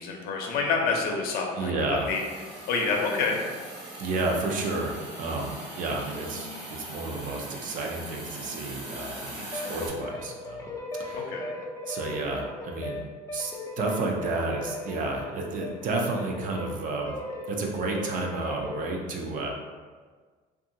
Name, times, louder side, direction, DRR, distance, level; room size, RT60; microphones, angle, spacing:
voice 1, 0.0-2.2 2.7-3.4 9.3-9.5 11.1-11.5, left 4 dB, 65° left, 1 dB, 0.6 m, -28 dB
voice 2, 1.6-2.1 4.0-11.3 11.9-13.0 13.3-17.2 17.5-19.5, right 3 dB, 50° right, 1 dB, 0.5 m, -31 dB
Hiss, 2.0-9.9, right 1 dB, 75° right, 1.2 m, -40 dB
sound 1, 9.5-16.7 17.1-18.9, left 2 dB, 20° left, 0.4 m, -37 dB
2.7 x 2.4 x 2.6 m, 1.5 s
supercardioid pair, 100°, 17 cm